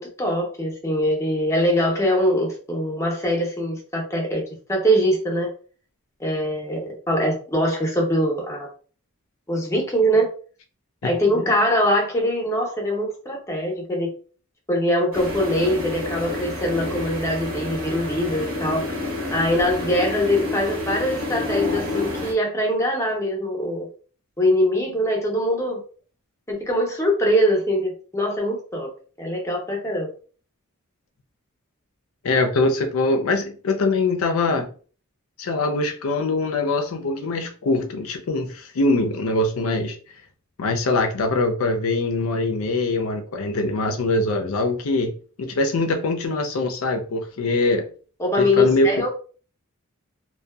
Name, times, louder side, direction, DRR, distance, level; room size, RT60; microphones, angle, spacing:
voice 1, 0.0-4.4 4.7-5.5 6.2-8.7 9.5-10.3 11.0-14.1 14.7-18.9 19.3-23.9 24.4-25.8 26.5-28.9 29.2-30.1 48.2-49.1, equal, 15° left, 0.6 m, -22 dB
sound 1, 15.1-22.3, left 2 dB, 65° right, 1.0 m, -29 dB
voice 2, 32.2-34.7 35.4-40.0 40.6-45.1 45.4-47.9 48.4-49.1, left 2 dB, 75° left, 0.4 m, -23 dB
2.6 x 2.2 x 2.2 m
head